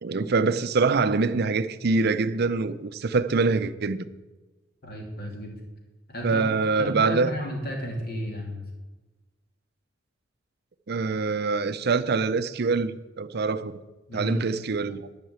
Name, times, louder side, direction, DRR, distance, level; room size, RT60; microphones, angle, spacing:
voice 1, 0.0-4.1 6.2-7.3 10.9-13.8 14.1-15.1, right 4 dB, 55° right, 0.6 m, -24 dB
voice 2, 4.8-5.6 6.1-6.4 6.8-8.6 14.1-14.4, equal, 55° left, 2.8 m, -33 dB
11.0 x 5.7 x 8.7 m
head